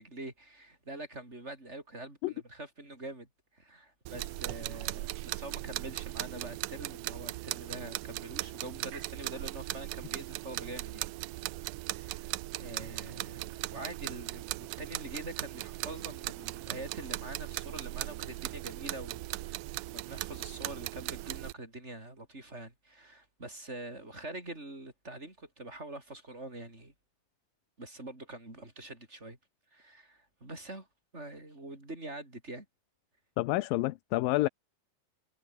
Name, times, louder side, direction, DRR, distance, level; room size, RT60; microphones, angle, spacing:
voice 1, 0.0-11.4 11.9-26.9 27.8-29.4 29.7-30.9 31.1-32.7, right 2 dB, 15° right, 6.7 m, -45 dB
sound 1, 4.1-21.5, right 19 dB, 85° right, 1.8 m, -38 dB
voice 2, 33.4-34.5, left 19 dB, 80° left, 2.4 m, -28 dB
omnidirectional pair, 4.1 m